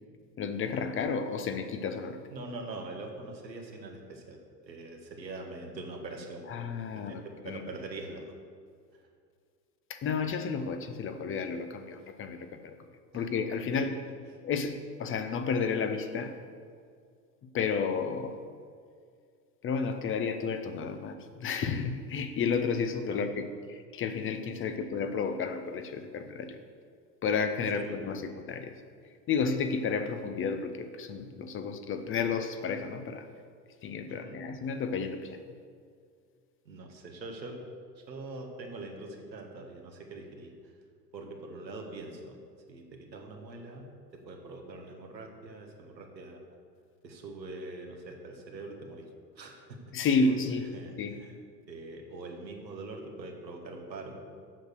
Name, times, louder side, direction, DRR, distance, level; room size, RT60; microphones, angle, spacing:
voice 1, 0.4-2.2 6.5-7.6 9.9-12.8 13.1-14.0 14.4-16.3 17.5-18.3 19.6-26.6 27.2-28.7 29.3-33.3 33.8-35.4 49.9-50.7 51.0-51.2, left 5 dB, 25° left, 8 dB, 0.6 m, -31 dB
voice 2, 2.3-4.4 4.6-6.6 6.9-8.2 13.1-13.2 23.1-23.3 24.7-24.9 27.7-28.1 34.1-34.4 36.6-37.6 38.0-40.5 41.1-42.4 42.7-43.9 44.3-46.4 47.0-49.0 49.4-49.8 50.7-51.3 51.7-54.2, right 2 dB, 85° right, 2 dB, 1.5 m, -43 dB
7.7 x 6.6 x 6.4 m, 2.1 s
figure-of-eight pair, 80°, 50 cm